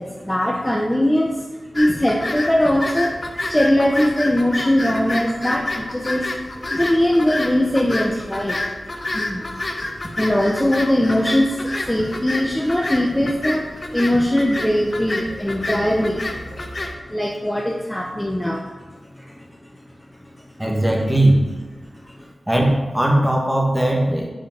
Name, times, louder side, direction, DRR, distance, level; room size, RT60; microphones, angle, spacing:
voice 1, 0.0-6.3 6.7-8.7 9.1-9.5 10.2-16.7 17.1-19.8 20.1-20.4 21.8-22.3, left 1 dB, 10° left, -1 dB, 0.9 m, -21 dB
sound 1, 1.7-16.9, left 2 dB, 40° left, 1.1 m, -29 dB
voice 2, 20.6-21.4 22.5-24.3, right 1 dB, 10° right, 0 dB, 2.0 m, -18 dB
8.0 x 5.1 x 6.0 m, 1.2 s
cardioid pair, 55°, 0 cm